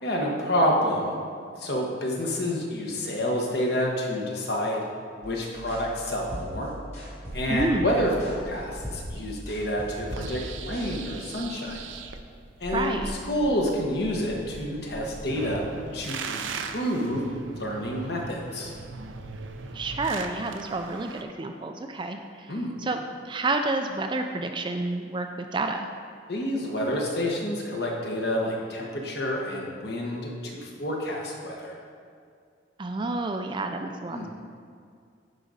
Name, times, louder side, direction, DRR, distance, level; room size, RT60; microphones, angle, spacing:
voice 1, 0.0-1.2 1.6-4.8 5.2-6.7 7.3-11.8 12.6-13.0 13.3-15.6 15.9-18.7 22.5-22.7 26.3-31.7 34.1-34.3, equal, 55° left, -1 dB, 1.2 m, -28 dB
sound 1, 5.2-10.9, equal, 35° left, 1.9 m, -39 dB
sound 2, 7.3-21.2, right 4 dB, 85° right, 0.5 m, -40 dB
voice 2, 7.5-7.9 12.7-13.1 19.7-25.9 32.8-34.3, right 2 dB, 25° right, 5 dB, 0.4 m, -29 dB
11.0 x 5.0 x 4.1 m, 2.3 s
head